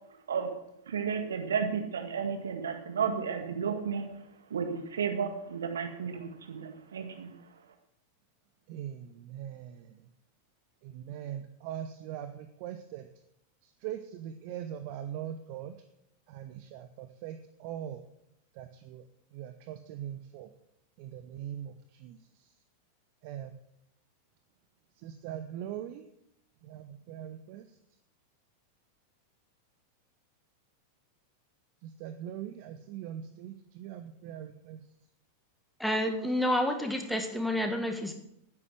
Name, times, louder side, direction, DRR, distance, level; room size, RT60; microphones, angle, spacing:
voice 1, 0.9-4.1 4.5-7.3, right 6 dB, 65° right, 5 dB, 1.9 m, -32 dB
voice 2, 8.7-10.0 10.8-13.1 13.6-15.7 16.3-18.0 18.5-19.1 19.3-20.5 21.0-22.5 23.2-23.5 25.0-26.1 26.6-27.6 31.8-34.8, right 10 dB, 45° right, 9 dB, 0.8 m, -41 dB
voice 3, 35.8-38.1, left 1 dB, ahead, 4 dB, 1.8 m, -29 dB
9.8 x 9.5 x 7.6 m, 0.79 s
figure-of-eight pair, 90°, 0 cm